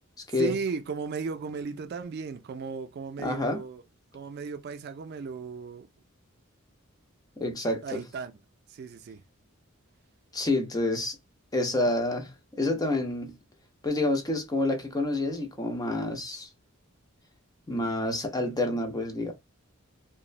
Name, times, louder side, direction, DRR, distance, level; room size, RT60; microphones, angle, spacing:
voice 1, 0.4-3.8 4.1-5.9 7.8-8.4 8.7-9.2, right 5 dB, 50° right, 0.3 m, -35 dB
voice 2, 3.2-3.6 7.4-8.0 10.3-11.2 11.5-13.4 13.8-16.5 17.7-19.3, left 2 dB, 20° left, 0.5 m, -28 dB
3.0 x 2.0 x 2.4 m
head